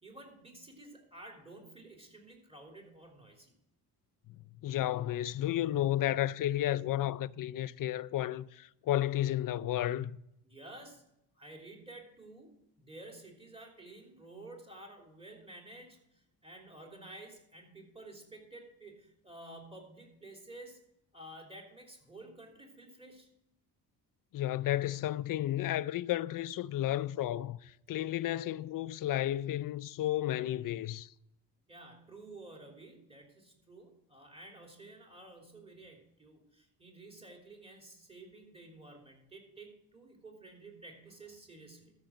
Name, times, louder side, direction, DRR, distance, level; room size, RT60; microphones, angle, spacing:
voice 1, 0.0-3.5 10.4-11.1 11.4-12.5 12.8-20.8 21.1-23.3 31.7-41.9, right 2 dB, 15° right, 3.3 m, -52 dB
voice 2, 4.6-10.1 24.3-31.1, left 13 dB, 55° left, 0.5 m, -32 dB
13.5 x 6.1 x 6.5 m
cardioid pair, 100°, 39 cm